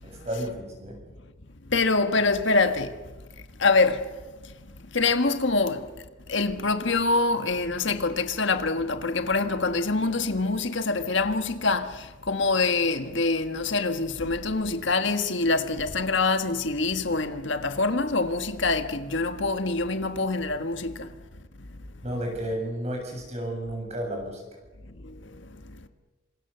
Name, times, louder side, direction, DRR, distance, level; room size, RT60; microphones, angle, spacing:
voice 1, 0.0-1.0 22.0-24.4, right 1 dB, 30° right, 7.5 m, -32 dB
voice 2, 1.7-2.9 3.6-4.0 4.9-5.9 6.3-21.1, left 3 dB, 65° left, 1.6 m, -25 dB
27.5 x 26.5 x 6.9 m
head